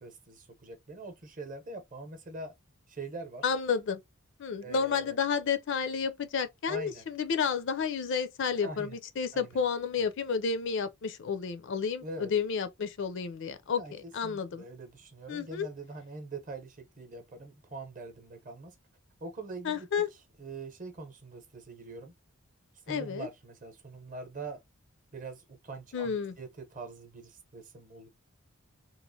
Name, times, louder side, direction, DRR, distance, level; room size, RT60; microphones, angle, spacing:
voice 1, 0.0-2.5 2.9-3.4 4.6-5.2 6.7-7.1 8.6-9.0 9.3-9.6 12.0-12.3 13.7-18.8 19.2-22.1 22.8-24.6 25.1-28.1, right 3 dB, 35° right, 0.8 m, -43 dB
voice 2, 3.4-4.0 4.4-13.8 14.1-14.6 15.3-15.7 19.6-20.1 22.9-23.3 25.9-26.3, left 6 dB, 55° left, 0.4 m, -31 dB
3.0 x 2.4 x 2.7 m
head